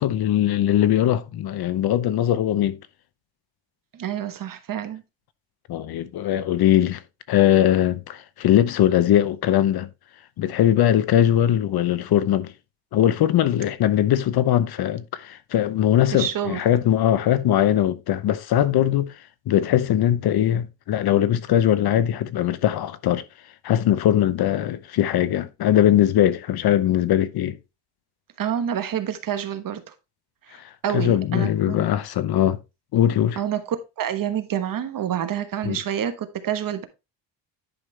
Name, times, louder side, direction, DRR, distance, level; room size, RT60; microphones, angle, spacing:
voice 1, 0.0-2.8 5.7-7.0 7.3-9.9 10.4-12.5 12.9-19.1 19.5-23.2 23.6-27.6 30.6-32.6 32.9-33.4 35.6-35.8, left 11 dB, 55° left, 0.8 m, -20 dB
voice 2, 3.9-5.0 16.1-16.6 28.4-29.9 30.8-31.8 33.4-36.9, right 9 dB, 45° right, 1.3 m, -28 dB
10.5 x 5.4 x 3.2 m
cardioid pair, 135°, 44 cm